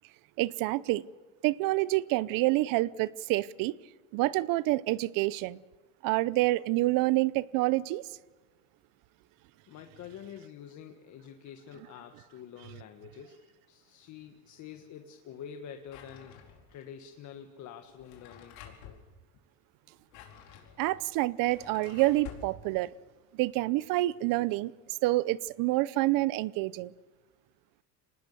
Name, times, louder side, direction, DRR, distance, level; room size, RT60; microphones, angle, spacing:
voice 1, 0.4-1.1 1.4-3.8 4.1-5.6 6.0-8.0 20.8-22.9 23.3-24.7 25.0-26.9, right 19 dB, 65° right, 0.7 m, -27 dB
voice 2, 9.7-16.4 16.7-19.0, left 8 dB, 50° left, 1.6 m, -47 dB
Drawer open or close, 15.9-16.8 17.9-19.0 19.9-22.5, left 8 dB, 85° left, 4.7 m, -50 dB
25.5 x 19.5 x 6.8 m
cardioid pair, 140°, 36 cm